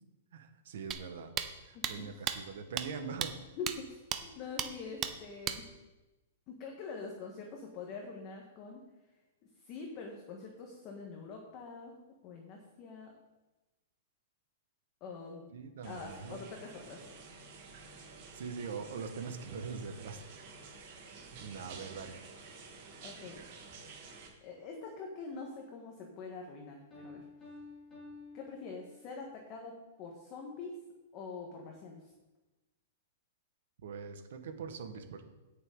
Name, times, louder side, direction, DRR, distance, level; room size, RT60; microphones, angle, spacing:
voice 1, 0.3-1.3 1.6-3.3 15.5-16.4 18.3-20.2 21.4-22.2 33.8-35.2, right 5 dB, 60° right, 7 dB, 1.4 m, -42 dB
sound 1, 0.9-1.0 1.4-1.5 1.8-1.9 2.3-2.4 2.8-2.9 3.2-3.3 3.7-3.8 4.1-4.2 4.6-4.7 5.0-5.1 5.5-5.6, right 10 dB, 20° right, 0.6 m, -33 dB
voice 2, 1.7-2.1 3.6-5.7 6.5-8.8 9.6-13.1 15.0-15.5 15.8-17.0 23.0-23.4 24.4-27.2 28.3-30.8 31.1-32.1, left 4 dB, 25° left, 1 dB, 1.3 m, -45 dB
sound 2, 15.8-24.3, right 4 dB, 35° right, 2.1 m, -51 dB
Piano, 26.9-29.4, left 3 dB, 10° left, 2.9 m, -51 dB
17.0 x 6.7 x 3.8 m, 1.1 s
hypercardioid pair, 175°, 0 cm